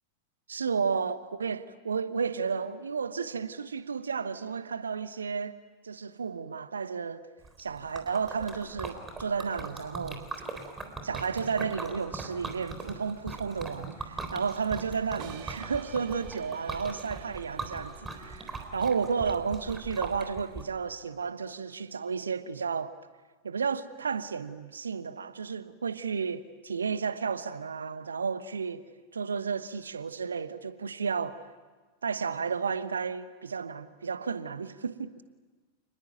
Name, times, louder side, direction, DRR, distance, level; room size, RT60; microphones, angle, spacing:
voice 1, 0.5-5.6 5.8-7.2 7.6-10.2 11.0-22.9 23.4-28.8 29.1-31.4 32.0-35.1, right 5 dB, 70° right, 1.1 m, -32 dB
Liquid, 7.4-20.6, right 3 dB, 15° right, 3.8 m, -40 dB
sound 1, 15.2-21.2, right 10 dB, 45° right, 1.7 m, -52 dB
28.5 x 20.5 x 9.3 m
figure-of-eight pair, 90°, 0 cm